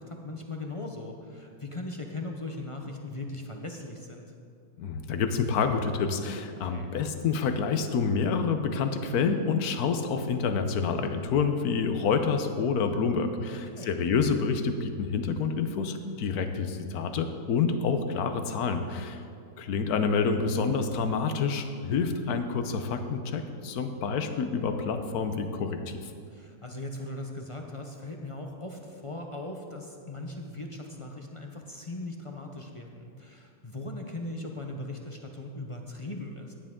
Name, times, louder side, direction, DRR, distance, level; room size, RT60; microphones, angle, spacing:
voice 1, 0.0-4.3 6.6-6.9 13.5-14.0 17.7-17.8 26.3-36.5, left 2 dB, 35° left, 2 dB, 0.5 m, -39 dB
voice 2, 4.8-19.2 19.6-26.0, left 5 dB, 70° left, 8 dB, 1.3 m, -28 dB
15.0 x 10.0 x 3.7 m, 2.4 s
omnidirectional pair, 1.7 m